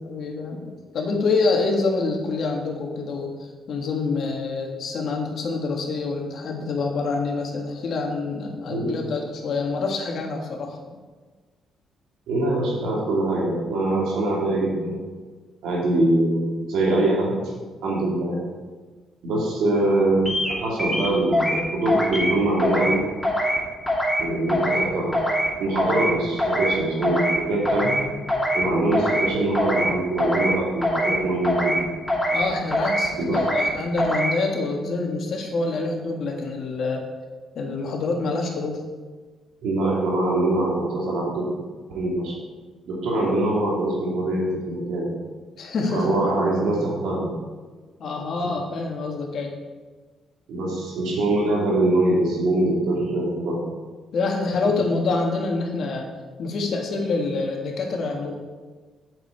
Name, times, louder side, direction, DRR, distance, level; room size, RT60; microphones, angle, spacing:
voice 1, 0.0-11.0 32.3-37.0 37.6-38.8 45.6-46.2 48.0-49.5 54.1-56.1 56.4-58.3, left 3 dB, 65° left, 1 dB, 1.7 m, -26 dB
voice 2, 12.3-15.0 15.6-17.3 17.8-18.5 19.2-23.0 24.2-25.2 25.6-28.0 28.5-31.7 33.2-33.5 39.6-41.5 41.9-42.4 42.9-45.1 45.9-47.3 48.0-48.1 50.5-53.6, right 2 dB, 85° right, -3 dB, 2.6 m, -23 dB
sound 1, 20.3-20.5 20.8-21.6 21.9-22.3 22.6-23.0 23.2-23.6 23.9-24.2 24.5-24.8 25.1-25.5 25.8-26.1 26.4-26.7 27.0-27.4 27.6-28.0 28.3-28.6 28.9-29.3 29.5-29.9 30.2-30.5 30.8-31.2 31.4-31.8 32.1-32.4 32.7-33.1 33.3-33.7 34.0-34.3, equal, 5° left, 2.6 m, -23 dB
8.1 x 6.8 x 4.6 m, 1.4 s
cardioid pair, 90°, 0 cm